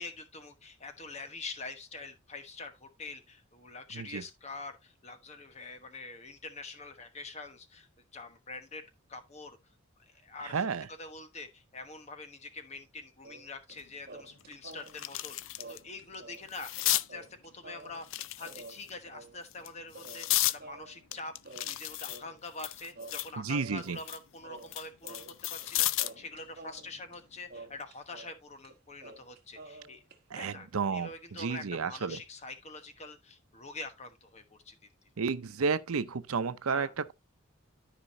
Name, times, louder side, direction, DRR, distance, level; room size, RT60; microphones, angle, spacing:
voice 1, 0.0-9.6 10.0-10.7 11.0-17.3 17.5-18.1 18.4-21.3 21.6-30.0 30.3-34.7 36.7-36.9, left 3 dB, 30° left, 1.1 m, -45 dB
voice 2, 10.5-10.9 23.4-24.0 30.3-32.2 35.2-37.1, right 5 dB, 90° right, 0.6 m, -32 dB
sound 1, 13.2-13.8 14.1-16.5 16.7-16.8 17.1-22.7 23.0-24.2 24.4-25.7 26.0-28.4 28.6-28.7 29.0-30.5, right 3 dB, 45° right, 1.1 m, -50 dB
sound 2, 13.8-13.9 14.4-15.8 16.1-17.1 18.0-18.9 19.5-20.6 21.1-23.4 23.8-26.2 27.6-27.8, left 15 dB, 65° left, 0.4 m, -33 dB
13.0 x 5.1 x 2.7 m
head